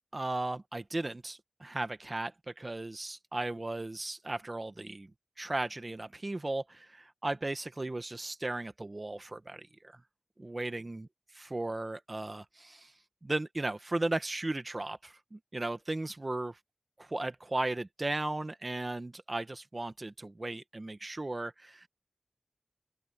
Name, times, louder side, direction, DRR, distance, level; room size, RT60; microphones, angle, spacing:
voice 1, 0.1-5.1 5.4-10.0 10.4-11.1 11.4-12.9 13.2-16.6 17.0-21.9, right 2 dB, 35° right, 1.3 m, -36 dB
open air
wide cardioid pair, 70°, 0 cm